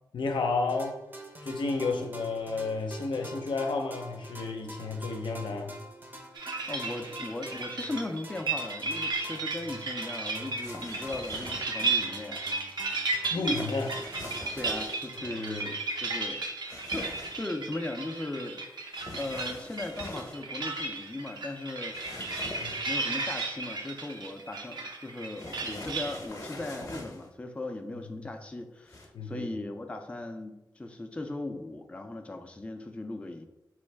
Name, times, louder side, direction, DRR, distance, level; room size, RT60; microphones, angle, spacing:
voice 1, 0.1-1.0 1.4-5.7 13.3-14.0 15.2-15.7 22.6-22.8 29.1-29.5, left 3 dB, 80° left, 0.6 m, -31 dB
sound 1, 0.7-16.1, right 1 dB, 25° right, 0.6 m, -47 dB
sound 2, 6.3-26.3, right 3 dB, 60° right, 0.6 m, -34 dB
voice 2, 6.7-12.7 14.6-18.6 19.2-22.0 22.9-33.5, left 2 dB, 15° left, 0.4 m, -38 dB
sound 3, 10.6-11.8 13.4-15.0 16.7-17.5 18.9-20.4 21.9-23.0 25.4-27.3 28.9-29.1, left 1 dB, 40° left, 0.8 m, -43 dB
4.3 x 3.1 x 3.3 m
wide cardioid pair, 95°, 8 cm